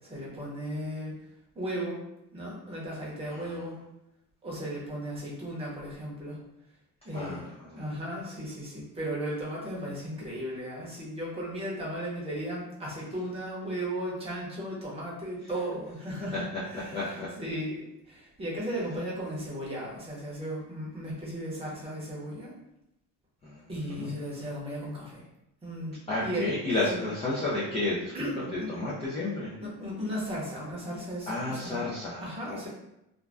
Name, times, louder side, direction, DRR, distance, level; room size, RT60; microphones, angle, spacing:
voice 1, 0.1-1.1 1.6-1.9 2.3-3.7 4.4-6.3 7.0-16.9 17.4-17.9 18.4-22.5 23.7-25.1 25.6-26.0 26.2-26.5 26.9-27.0 28.1-28.3 28.6-28.7 29.6-31.8 32.2-32.7, equal, 15° right, -5 dB, 0.7 m, -35 dB
voice 2, 3.3-3.7 7.1-7.9 15.4-15.5 16.3-17.3 23.4-23.6 23.9-24.1 26.1-29.5 31.3-32.7, left 2 dB, 15° left, -8 dB, 0.3 m, -32 dB
2.5 x 2.1 x 3.3 m, 0.86 s
cardioid pair, 165°, 38 cm